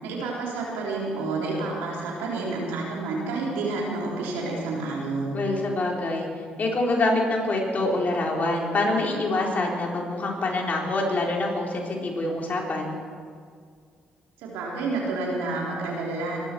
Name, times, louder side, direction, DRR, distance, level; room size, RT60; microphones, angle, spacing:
voice 1, 0.0-5.4 14.4-16.4, right 3 dB, 90° right, -3 dB, 3.8 m, -29 dB
voice 2, 5.3-6.3 6.6-13.0, left 2 dB, 50° left, -1 dB, 4.3 m, -25 dB
23.5 x 13.0 x 4.6 m, 2.1 s
supercardioid pair, 55°, 3 cm